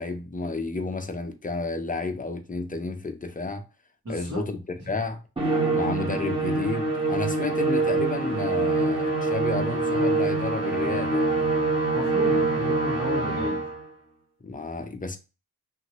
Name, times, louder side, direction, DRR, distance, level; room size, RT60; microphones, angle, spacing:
voice 1, 0.0-3.6 4.1-4.6 4.9-5.2 5.6-11.5 14.4-15.2, left 3 dB, 20° left, 0.6 m, -31 dB
voice 2, 4.0-4.4 11.9-13.7, left 1 dB, 50° right, 1.2 m, -34 dB
Musical instrument, 5.4-13.8, right 3 dB, 15° right, 1.4 m, -25 dB
2.8 x 2.6 x 2.9 m
cardioid pair, 55°, 36 cm